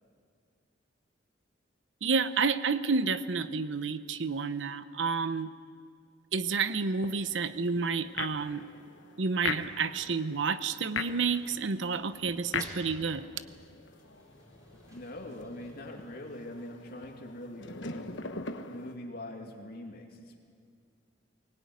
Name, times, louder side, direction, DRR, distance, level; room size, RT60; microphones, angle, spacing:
voice 1, 2.0-5.5 6.3-8.7 9.2-13.3, right 5 dB, 80° right, 13 dB, 0.8 m, -30 dB
sound 1, 7.0-18.9, left 5 dB, 75° left, 1.2 m, -41 dB
sound 2, 11.1-16.9, right 1 dB, 20° right, 5.1 m, -54 dB
voice 2, 14.9-18.1 18.7-20.4, left 1 dB, 60° left, 1 dB, 2.5 m, -43 dB
23.0 x 18.0 x 9.4 m, 2.2 s
head